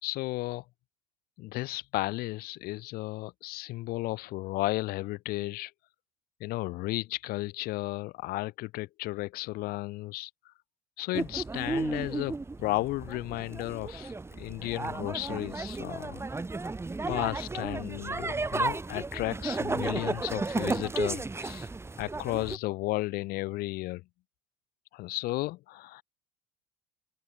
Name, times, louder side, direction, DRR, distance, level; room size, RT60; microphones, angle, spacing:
voice 1, 0.0-0.6 1.4-5.7 6.4-10.5 11.0-16.2 17.1-21.7 22.0-24.0 24.9-26.0, left 19 dB, 65° left, 4.8 m, -34 dB
sound 1, 11.1-22.6, right 3 dB, 15° right, 3.2 m, -34 dB
open air
supercardioid pair, 85°, 17 cm